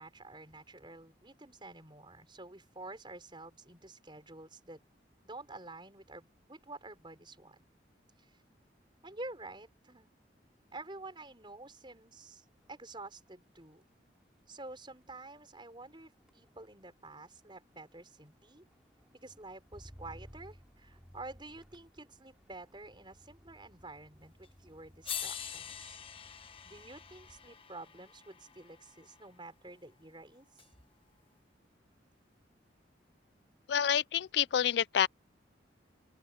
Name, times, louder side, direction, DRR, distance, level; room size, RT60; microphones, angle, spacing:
voice 1, 0.0-4.8 5.2-7.6 8.2-8.4 9.0-10.1 10.7-13.8 14.5-18.7 19.2-26.0 26.6-30.6, right 2 dB, 25° right, 5.5 m, -49 dB
Motor vehicle (road), 12.5-12.8 13.1-27.6 28.0-28.4, equal, 5° right, 4.6 m, -60 dB
sound 1, 24.4-24.5 25.0-29.2 30.6-30.7, left 8 dB, 30° left, 1.2 m, -44 dB
voice 2, 33.7-35.1, left 9 dB, 65° left, 0.3 m, -28 dB
open air
head